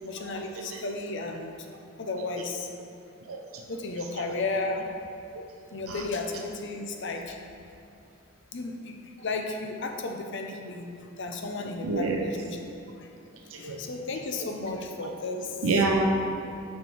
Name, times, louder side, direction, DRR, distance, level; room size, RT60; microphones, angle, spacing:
voice 1, 0.0-1.5 2.0-2.7 3.7-4.9 5.7-7.4 8.5-12.6 13.0-13.1 13.6-15.7, left 3 dB, 60° left, 3 dB, 0.7 m, -34 dB
voice 2, 11.8-12.3 13.5-13.8 15.6-16.2, right 2 dB, 90° right, 2 dB, 0.6 m, -26 dB
8.2 x 4.4 x 4.6 m, 2.7 s
head